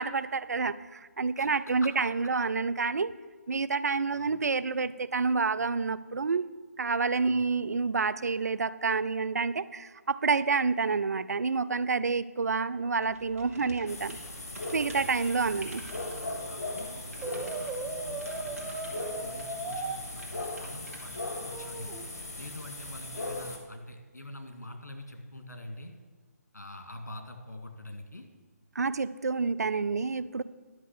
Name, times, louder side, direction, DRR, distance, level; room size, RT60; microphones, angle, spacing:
voice 1, 0.0-3.1 3.5-6.5 6.8-14.2 14.7-15.8 28.8-30.4, right 4 dB, 70° right, 16 dB, 0.5 m, -28 dB
voice 2, 1.4-1.9 4.1-4.3 7.3-7.4 14.8-15.0 16.5-18.7 19.1-21.9 22.4-25.9 26.5-28.3, left 1 dB, 80° left, 5 dB, 2.0 m, -45 dB
sound 1, 13.0-21.2, right 3 dB, 55° right, 2.3 m, -51 dB
sound 2, 13.9-23.6, left 2 dB, 65° left, 2.6 m, -38 dB
Brass instrument, 17.2-20.0 21.5-22.1, right 3 dB, 5° right, 0.7 m, -37 dB
11.0 x 5.9 x 7.3 m, 1.4 s
figure-of-eight pair, 150°, 9 cm